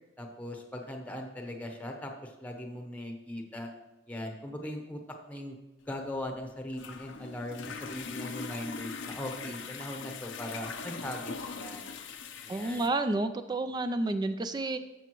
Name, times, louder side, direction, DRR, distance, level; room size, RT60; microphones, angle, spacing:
voice 1, 0.2-3.7 4.1-5.0 5.3-5.6 5.9-11.9 12.4-12.9, left 1 dB, 10° left, 3 dB, 0.9 m, -39 dB
sound 1, 5.9-12.9, left 5 dB, 85° left, 0.7 m, -41 dB
voice 2, 12.5-14.8, right 2 dB, 25° right, 10 dB, 0.3 m, -30 dB
13.5 x 6.7 x 3.0 m, 0.99 s
head